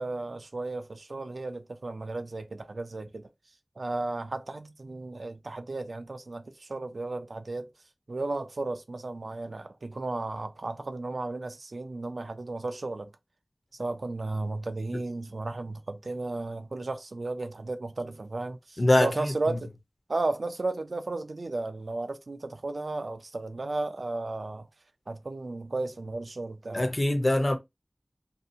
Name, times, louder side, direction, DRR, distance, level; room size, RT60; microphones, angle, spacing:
voice 1, 0.0-3.3 3.8-7.7 8.1-13.1 13.7-19.7 20.1-24.7 25.1-26.9, right 2 dB, 90° right, 0.3 m, -34 dB
voice 2, 18.8-19.1 26.7-27.6, left 1 dB, 50° left, 0.6 m, -22 dB
2.7 x 2.3 x 2.6 m
wide cardioid pair, 55°, 0 cm